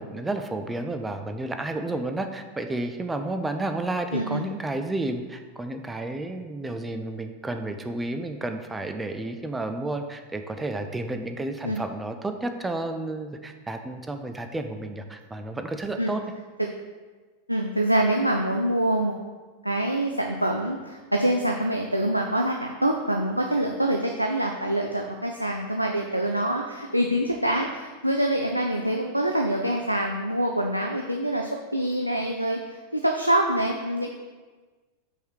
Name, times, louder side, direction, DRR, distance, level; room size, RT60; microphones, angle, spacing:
voice 1, 0.0-16.2, right 2 dB, 10° right, 6 dB, 0.5 m, -31 dB
voice 2, 4.1-4.4 11.6-11.8 16.0-16.1 17.5-19.1 19.6-34.1, right 1 dB, 90° right, 2 dB, 0.4 m, -25 dB
6.4 x 4.9 x 4.6 m, 1.4 s
figure-of-eight pair, 90°, 0 cm